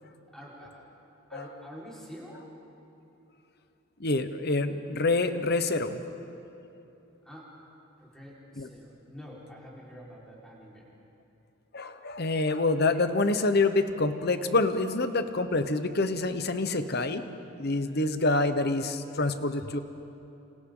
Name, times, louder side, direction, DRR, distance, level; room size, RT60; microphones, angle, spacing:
voice 1, 0.3-0.9 1.3-2.5 7.2-7.5 8.0-10.9, equal, 5° left, -6 dB, 4.6 m, -47 dB
voice 2, 4.0-6.1 8.6-8.7 11.7-17.2 17.6-19.8, left 2 dB, 50° left, 9 dB, 1.0 m, -27 dB
28.5 x 27.0 x 3.9 m, 3.0 s
head